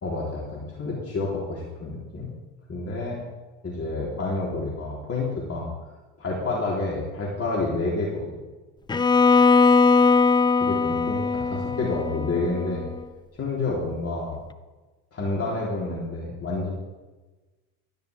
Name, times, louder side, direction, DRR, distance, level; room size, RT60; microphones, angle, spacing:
voice 1, 0.0-2.3 2.7-3.2 3.6-5.7 6.2-8.3 10.6-12.9 13.4-14.4 15.1-16.7, left 3 dB, 30° left, -4 dB, 3.7 m, -29 dB
Bowed string instrument, 8.9-12.9, left 4 dB, 10° left, 0.4 m, -20 dB
16.0 x 13.0 x 3.5 m, 1.2 s
supercardioid pair, 85°, 44 cm